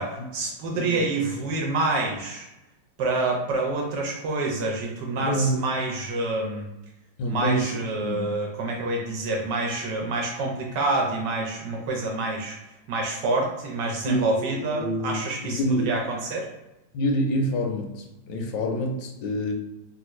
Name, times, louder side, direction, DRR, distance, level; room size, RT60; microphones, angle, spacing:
voice 1, 0.0-2.5 3.0-6.7 7.2-12.6 12.9-15.6 15.8-16.5, right 2 dB, 80° right, 0 dB, 1.2 m, -27 dB
voice 2, 0.7-1.1 5.2-5.6 7.2-8.3 14.1-15.9 16.9-19.5, equal, 85° left, 3 dB, 1.3 m, -27 dB
3.2 x 2.5 x 2.9 m, 0.96 s
omnidirectional pair, 1.9 m